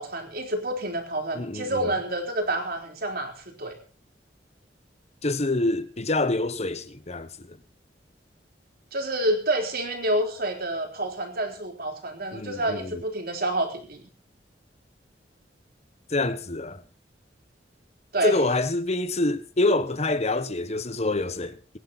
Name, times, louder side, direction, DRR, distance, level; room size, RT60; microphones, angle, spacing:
voice 1, 0.0-3.8 8.9-14.0 18.1-18.4, right 1 dB, 55° right, 3.9 m, -28 dB
voice 2, 1.3-1.8 5.2-7.6 12.3-13.0 16.1-16.8 18.2-21.8, left 2 dB, 35° left, 1.2 m, -26 dB
22.5 x 10.5 x 4.1 m
head